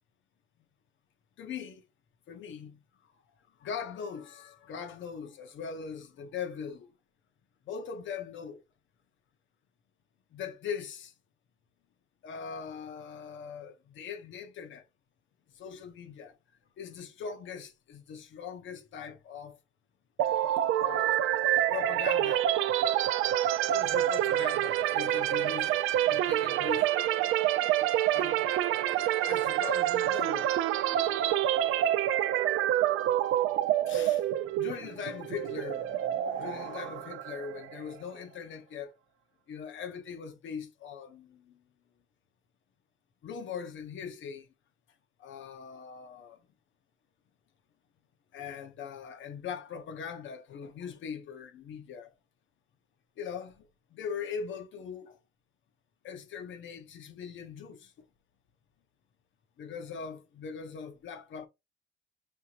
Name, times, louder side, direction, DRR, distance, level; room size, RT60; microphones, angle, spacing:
voice 1, 1.4-1.8 2.3-2.8 3.6-6.9 7.7-8.6 10.3-11.1 12.2-14.8 15.6-16.3 16.8-19.6 20.8-22.5 23.7-27.4 28.1-28.4 29.2-30.5 30.9-31.5 33.9-34.2 34.6-38.9 39.5-41.6 43.2-44.5 45.2-46.4 48.3-52.1 53.2-53.7 53.9-55.2 56.0-57.9 59.6-61.5, left 6 dB, 70° left, 1.0 m, -41 dB
sound 1, 20.2-37.9, right 12 dB, 90° right, 0.5 m, -27 dB
5.7 x 2.8 x 2.9 m
cardioid pair, 90°, 20 cm